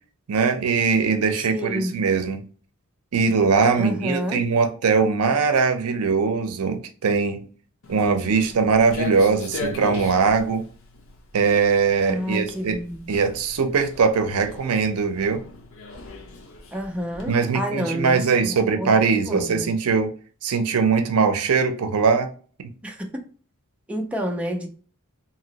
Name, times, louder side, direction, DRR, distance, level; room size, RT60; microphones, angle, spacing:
voice 1, 0.3-2.4 3.1-7.4 7.9-10.7 11.3-12.8 13.1-15.4 17.3-20.1 20.4-22.3, right 5 dB, 80° right, 0.5 m, -21 dB
voice 2, 1.4-2.0 3.8-4.4 12.1-13.1 16.7-18.9 19.3-19.7 22.8-23.1 23.9-24.7, equal, 5° right, 0.4 m, -29 dB
Walk footsteps, 7.8-17.3, left 3 dB, 65° left, 0.7 m, -38 dB
2.9 x 2.8 x 2.8 m
head